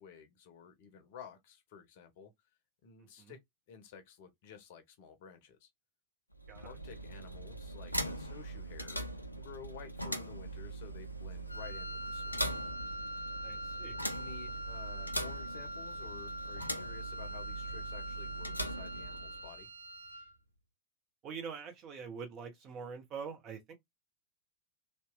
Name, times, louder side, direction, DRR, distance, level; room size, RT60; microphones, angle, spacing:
voice 1, 0.0-2.3 2.8-3.4 3.7-5.7 6.6-12.4 14.1-19.7, left 7 dB, 50° left, 0.7 m, -53 dB
voice 2, 3.0-3.3 6.5-6.7 13.4-14.0 21.2-23.7, right 6 dB, 35° right, 1.0 m, -44 dB
sound 1, 6.3-19.6, right 1 dB, 85° left, 0.4 m, -41 dB
Wind instrument woodwind instrument, 11.5-20.3, equal, 85° right, 0.4 m, -43 dB
2.9 x 2.2 x 2.2 m
figure-of-eight pair, 90°, 0 cm